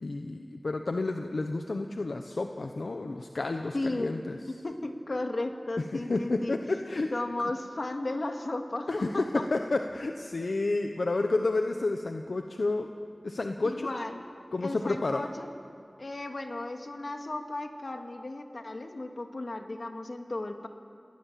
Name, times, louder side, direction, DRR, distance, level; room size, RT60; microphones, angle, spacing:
voice 1, 0.0-4.4 5.8-7.1 8.9-12.9 13.2-13.9 14.5-15.3, left 2 dB, 85° left, 5 dB, 1.0 m, -30 dB
voice 2, 3.7-4.2 4.5-6.6 7.1-9.5 13.6-14.3 14.6-15.5 16.0-20.7, left 2 dB, 65° left, 4 dB, 2.1 m, -35 dB
28.5 x 20.0 x 7.6 m, 2.3 s
wide cardioid pair, 40°, 0 cm